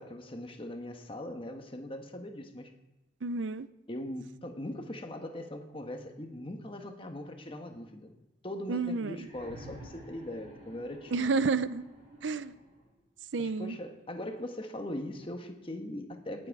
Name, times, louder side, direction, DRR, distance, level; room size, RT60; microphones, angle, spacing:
voice 1, 0.0-2.7 3.9-8.1 8.4-11.4 13.4-16.5, left 1 dB, 30° left, 5 dB, 1.4 m, -40 dB
voice 2, 3.2-3.7 8.7-9.3 11.1-11.9 12.2-12.5 13.3-13.8, right 4 dB, 85° right, 15 dB, 0.6 m, -30 dB
sound 1, 9.1-13.0 14.2-14.3, right 1 dB, 35° right, 6.0 m, -51 dB
19.5 x 7.8 x 4.8 m, 1.0 s
head